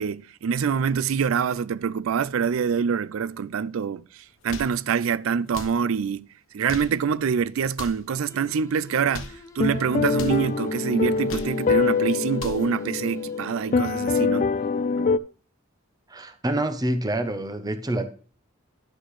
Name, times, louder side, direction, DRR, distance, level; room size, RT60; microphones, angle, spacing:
voice 1, 0.0-6.3 6.5-14.5 15.0-15.1, right 6 dB, 80° right, 0.4 m, -25 dB
sound 1, 4.3-4.8 5.4-5.8 6.5-7.0 7.7-8.1 8.9-9.4 10.1-10.4 11.1-11.6 12.2-12.7, left 4 dB, 85° left, 1.1 m, -39 dB
sound 2, 8.3-14.2, left 3 dB, 15° left, 0.7 m, -48 dB
sound 3, 9.6-15.2, left 5 dB, 35° left, 0.3 m, -24 dB
voice 2, 16.1-18.1, right 1 dB, 20° right, 0.7 m, -27 dB
11.0 x 6.3 x 3.2 m
head